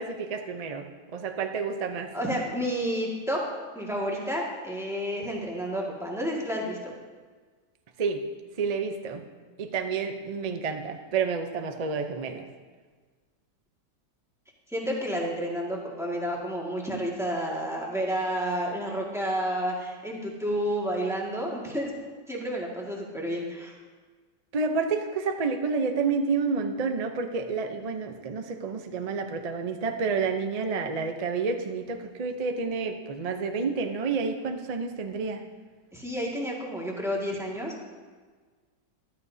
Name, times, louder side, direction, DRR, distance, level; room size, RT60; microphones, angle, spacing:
voice 1, 0.0-2.1 8.0-8.2 8.6-9.2 9.6-12.5 24.5-35.4, right 5 dB, 55° right, 6 dB, 0.4 m, -29 dB
voice 2, 2.1-3.4 3.8-6.9 14.7-21.9 22.3-23.7 35.9-37.9, equal, ahead, -4 dB, 1.8 m, -30 dB
14.0 x 12.5 x 2.7 m, 1.5 s
omnidirectional pair, 1.8 m